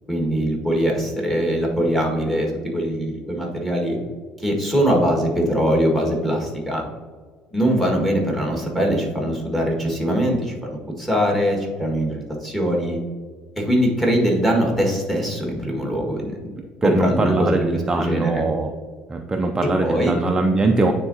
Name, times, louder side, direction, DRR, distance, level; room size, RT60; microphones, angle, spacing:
voice 1, 0.1-4.0 4.4-6.8 7.5-13.0 13.6-16.5 16.8-18.4 19.8-20.1, equal, 5° left, -1 dB, 1.7 m, -22 dB
voice 2, 16.8-18.7 19.1-20.9, right 2 dB, 20° right, 3 dB, 0.5 m, -21 dB
9.3 x 3.8 x 2.8 m, 1.5 s
supercardioid pair, 105°, 3 cm